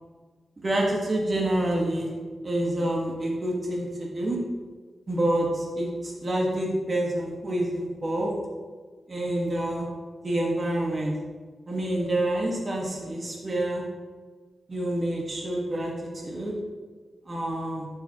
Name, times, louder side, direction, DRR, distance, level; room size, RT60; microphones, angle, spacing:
voice 1, 0.6-2.1 2.4-4.4 5.1-8.3 9.1-9.9 10.2-11.1 11.7-13.8 14.7-15.9 16.2-16.5 17.3-17.9, right 1 dB, 35° right, -2 dB, 1.5 m, -27 dB
11.0 x 5.5 x 2.9 m, 1.5 s
wide cardioid pair, 115°, 0 cm